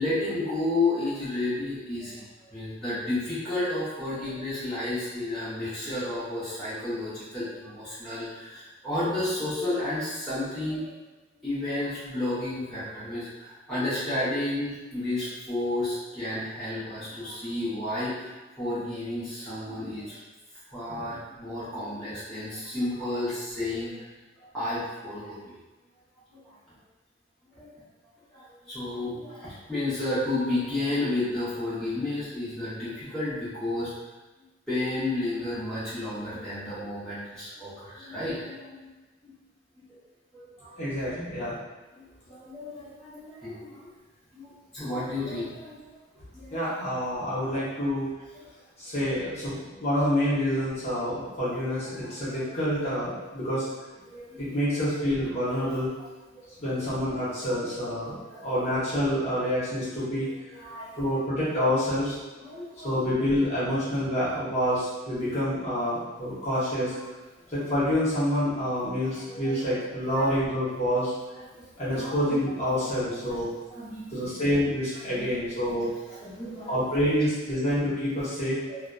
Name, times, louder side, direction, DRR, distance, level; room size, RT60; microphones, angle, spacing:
voice 1, 0.0-10.9 11.4-18.3 18.6-20.2 20.7-24.0 24.5-25.4 26.3-26.4 27.5-27.7 28.3-33.9 34.7-38.9 39.2-39.3 40.3-40.7 40.9-41.0 41.9-43.8 44.3-45.8 46.3-46.8 47.5-47.6 52.3-52.4 54.1-54.6 56.3-56.4 57.0-57.2 57.6-57.8 58.3-58.7 60.6-61.0 62.4-63.1 66.9-67.0 69.4-69.6 70.2-70.3 71.5-71.6 71.9-72.3 72.7-72.8 73.1-73.2 73.7-74.3 75.7-75.8 76.2-76.8, left 2 dB, 5° left, -14 dB, 0.7 m, -32 dB
voice 2, 40.8-41.6 46.5-48.1 48.8-53.7 54.4-55.9 56.6-58.1 58.4-60.3 61.0-62.2 62.8-66.9 67.5-71.1 71.8-73.5 74.1-75.9 76.7-78.6, equal, 35° left, -10 dB, 0.9 m, -27 dB
2.6 x 2.1 x 2.2 m, 1.2 s
head